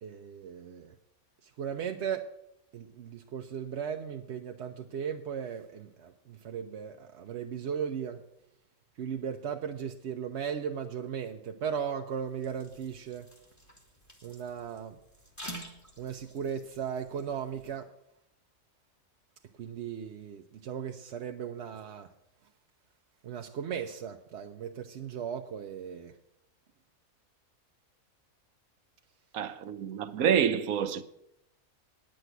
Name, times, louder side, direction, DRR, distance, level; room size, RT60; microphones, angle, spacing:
voice 1, 0.0-0.9 1.4-2.3 2.7-8.2 9.0-13.3 14.2-15.0 16.0-17.9 19.6-22.1 23.2-26.1, right 7 dB, 60° right, 0.8 m, -37 dB
sound 1, 12.1-17.7, right 1 dB, 10° left, 1.8 m, -49 dB
voice 2, 29.3-31.0, right 8 dB, 75° right, 1.2 m, -27 dB
9.8 x 7.9 x 8.0 m
omnidirectional pair, 1.5 m